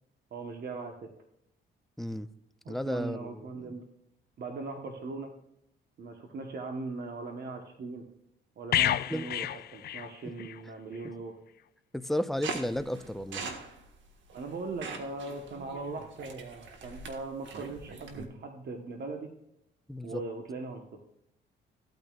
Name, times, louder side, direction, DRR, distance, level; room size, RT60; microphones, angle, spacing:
voice 1, 0.3-1.1 2.6-3.8 4.4-5.3 6.0-8.0 8.6-11.4 14.3-19.3 20.0-21.0, right 3 dB, 55° right, 3 dB, 1.3 m, -39 dB
voice 2, 2.0-2.3 2.7-3.8 9.1-9.3 11.9-13.4 19.9-20.2, left 1 dB, ahead, 12 dB, 0.5 m, -33 dB
sound 1, 8.7-10.6 10.9-11.1, left 12 dB, 55° left, 0.4 m, -30 dB
sound 2, 12.4-18.3, right 4 dB, 70° right, 1.7 m, -42 dB
14.5 x 9.2 x 2.5 m, 0.80 s
cardioid pair, 90°, 20 cm